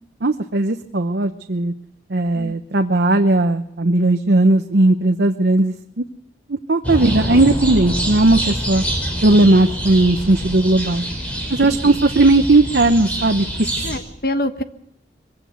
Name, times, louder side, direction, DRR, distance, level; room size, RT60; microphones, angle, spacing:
voice 1, 0.2-1.7 2.1-6.0 6.5-8.8 9.2-11.0 11.5-13.9, right 2 dB, 75° right, 7 dB, 0.9 m, -17 dB
sound 1, 6.8-14.0, right 1 dB, 10° left, 5.4 m, -25 dB
voice 2, 13.8-14.6, left 1 dB, 55° left, 9 dB, 1.3 m, -25 dB
23.0 x 16.0 x 8.0 m, 0.77 s
head